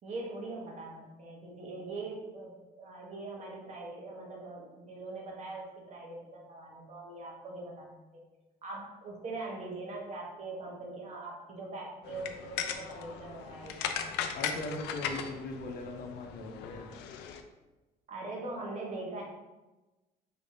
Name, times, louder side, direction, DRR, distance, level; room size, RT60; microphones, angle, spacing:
voice 1, 0.0-8.2 8.6-13.9 18.1-19.2, right 2 dB, 45° right, -1 dB, 1.2 m, -42 dB
sound 1, 12.0-17.4, left 8 dB, 85° left, 0.4 m, -38 dB
voice 2, 14.3-16.9, left 2 dB, 60° left, 2 dB, 0.8 m, -39 dB
4.9 x 3.4 x 2.7 m, 1.1 s
cardioid pair, 110°, 17 cm